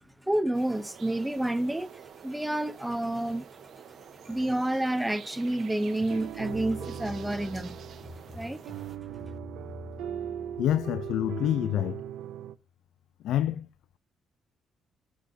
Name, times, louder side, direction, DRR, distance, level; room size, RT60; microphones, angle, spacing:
voice 1, 0.2-1.9 2.2-3.5 4.2-7.8 8.3-8.6, right 1 dB, 5° right, 0.7 m, -29 dB
sound 1, 0.5-9.0, right 8 dB, 65° right, 1.1 m, -49 dB
sound 2, 6.0-11.3, left 2 dB, 50° left, 3.3 m, -46 dB
sound 3, 6.1-12.5, right 11 dB, 85° right, 0.5 m, -39 dB
voice 2, 10.6-12.0 13.2-13.7, left 12 dB, 80° left, 0.4 m, -27 dB
15.0 x 6.3 x 2.7 m
cardioid pair, 90°, 0 cm